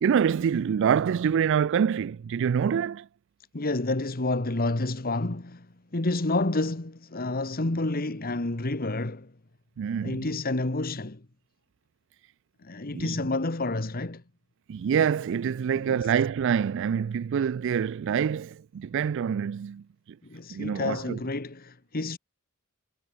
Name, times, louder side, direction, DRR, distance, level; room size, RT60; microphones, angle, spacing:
voice 1, 0.0-3.1 9.8-10.2 12.9-13.1 14.7-19.8 20.5-21.2, right 7 dB, 60° right, 0.3 m, -26 dB
voice 2, 3.5-9.3 10.0-11.2 12.6-14.2 15.9-16.1 20.2-22.2, left 2 dB, 45° left, 1.5 m, -29 dB
head